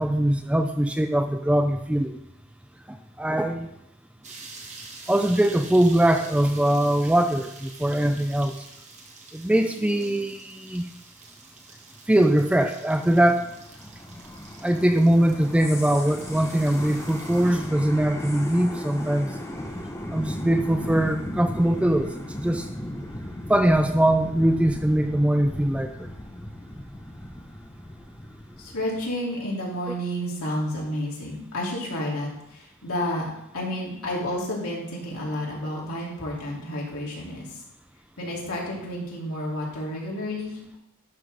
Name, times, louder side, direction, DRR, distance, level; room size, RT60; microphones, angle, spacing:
voice 1, 0.0-2.2 2.9-3.7 5.1-8.7 9.3-10.9 12.1-13.5 14.6-19.4 20.1-22.7 23.5-25.9, right 1 dB, 5° right, 7 dB, 0.3 m, -22 dB
sound 1, 4.2-17.7, right 3 dB, 30° right, 1.3 m, -46 dB
sound 2, 12.5-29.0, left 1 dB, 10° left, 0.8 m, -36 dB
voice 2, 28.6-33.3 33.5-37.6 38.2-40.8, left 1 dB, 75° left, -4 dB, 2.6 m, -30 dB
11.0 x 5.9 x 3.4 m, 0.84 s
head